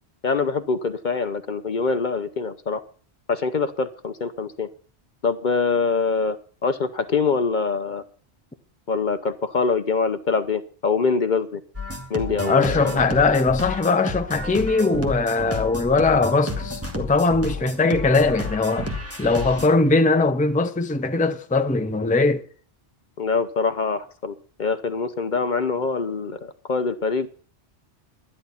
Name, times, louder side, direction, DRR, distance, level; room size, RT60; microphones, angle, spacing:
voice 1, 0.2-2.8 3.3-4.7 5.2-6.4 6.6-8.0 8.9-11.6 12.1-13.1 23.2-27.3, left 4 dB, 50° left, 0.8 m, -24 dB
sound 1, 11.7-19.7, left 2 dB, 10° right, 2.0 m, -31 dB
voice 2, 12.5-18.9 19.2-22.5, left 3 dB, 10° left, 0.6 m, -20 dB
12.0 x 11.0 x 5.6 m
omnidirectional pair, 1.1 m